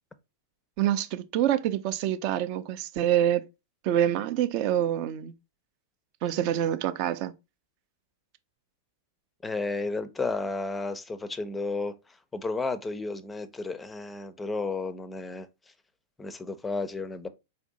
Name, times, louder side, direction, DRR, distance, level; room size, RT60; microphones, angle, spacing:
voice 1, 0.8-3.4 3.8-5.3 6.2-7.3, right 11 dB, 45° right, 0.5 m, -26 dB
voice 2, 9.4-11.9 12.3-15.5 16.2-17.3, left 3 dB, 10° left, 0.5 m, -32 dB
4.2 x 2.6 x 3.8 m
figure-of-eight pair, 100°, 0 cm